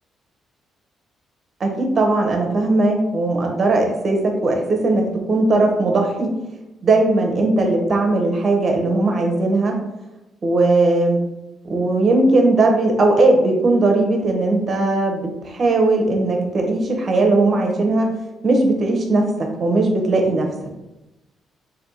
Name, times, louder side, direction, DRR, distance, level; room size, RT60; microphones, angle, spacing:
voice 1, 1.6-6.3 6.8-9.8 10.4-11.2 11.6-18.1 18.4-20.5, right 2 dB, 40° right, 2 dB, 0.9 m, -18 dB
3.4 x 2.7 x 4.0 m, 0.96 s
cardioid pair, 90°, 0 cm